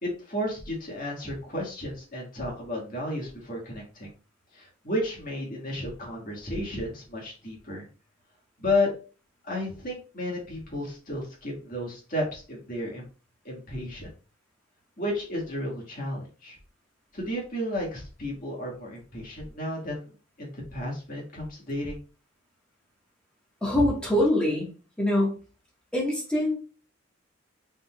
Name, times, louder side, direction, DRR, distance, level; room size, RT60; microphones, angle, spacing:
voice 1, 0.0-4.1 4.5-7.9 8.6-8.9 9.4-13.1 13.5-14.1 15.0-16.6 17.1-20.1 20.4-22.0, left 1 dB, 45° left, -2 dB, 1.8 m, -32 dB
voice 2, 23.6-24.7 25.0-25.4 25.9-26.6, left 1 dB, 5° left, -4 dB, 1.5 m, -24 dB
5.3 x 3.7 x 2.4 m, 0.35 s
head